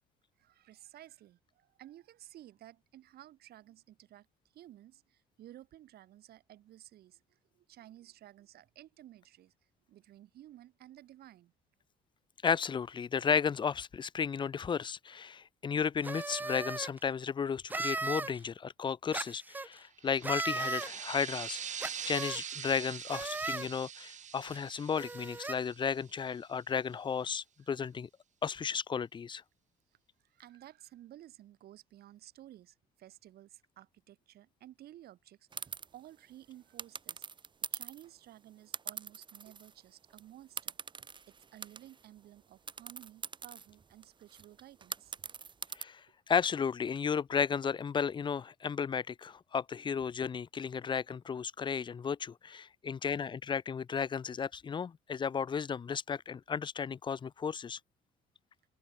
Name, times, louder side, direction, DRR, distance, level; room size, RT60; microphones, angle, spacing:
voice 1, 0.4-4.3 4.5-9.5 9.9-11.5 27.6-27.8 30.2-37.3 37.6-40.8 41.3-45.1 46.0-46.1, right 13 dB, 65° right, 4.4 m, -55 dB
voice 2, 12.4-28.1 28.4-29.4 45.8-46.0 46.3-57.8, left 6 dB, 30° left, 0.6 m, -34 dB
sound 1, 16.0-16.9 17.7-18.3 19.1-19.7 20.2-20.9 21.8-22.4 23.1-23.7 24.5-24.6 25.0-25.5, right 3 dB, 10° right, 0.3 m, -36 dB
sound 2, 20.0-26.3, right 8 dB, 45° right, 3.8 m, -43 dB
sound 3, 35.5-35.9 36.8-38.1 38.7-39.8 40.1-40.2 40.6-42.1 42.7-45.8, right 6 dB, 30° right, 1.1 m, -43 dB
open air
cardioid pair, 110°, 17 cm